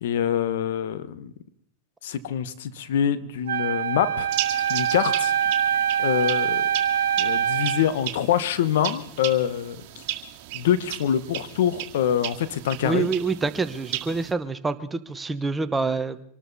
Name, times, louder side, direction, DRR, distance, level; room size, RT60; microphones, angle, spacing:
voice 1, 0.0-1.3 2.0-4.3 4.7-5.3 6.0-6.7 7.2-9.8 10.5-13.1, left 9 dB, 75° left, 14 dB, 1.1 m, -25 dB
Wind instrument woodwind instrument, 3.5-7.9, right 9 dB, 75° right, 1.2 m, -24 dB
sound 1, 4.3-14.3, right 14 dB, 55° right, 2.0 m, -35 dB
voice 2, 12.8-16.2, right 4 dB, 15° right, 11 dB, 1.0 m, -26 dB
25.5 x 12.5 x 4.1 m, 0.72 s
hypercardioid pair, 115°, 0 cm